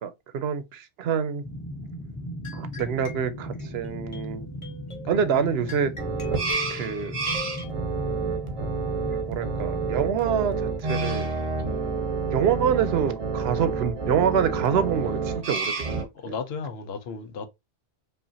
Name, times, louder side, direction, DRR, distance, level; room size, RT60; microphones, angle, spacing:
voice 1, 0.0-1.4 2.5-4.5 5.1-5.9 6.7-7.2 9.3-11.3 12.3-15.9 16.3-16.4, right 7 dB, 80° right, 0.8 m, -26 dB
sound 1, 1.4-10.2, equal, 10° left, 0.6 m, -38 dB
sound 2, 2.4-7.7, left 4 dB, 30° left, 1.1 m, -41 dB
voice 2, 5.2-5.5 16.1-17.5, left 5 dB, 80° left, 0.9 m, -35 dB
sound 3, 6.0-16.0, right 4 dB, 35° right, 0.7 m, -29 dB
5.0 x 2.4 x 2.7 m
omnidirectional pair, 1.0 m